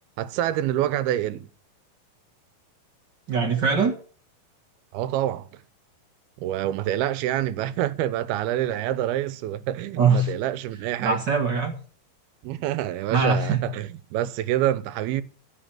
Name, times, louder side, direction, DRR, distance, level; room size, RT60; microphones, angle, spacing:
voice 1, 0.2-1.5 4.9-5.6 6.4-11.2 12.4-15.2, right 12 dB, 85° right, 2.7 m, -27 dB
voice 2, 3.3-4.0 9.9-10.3 11.0-11.7 13.1-13.7, right 5 dB, 55° right, 1.2 m, -22 dB
15.0 x 5.9 x 7.5 m
omnidirectional pair, 4.4 m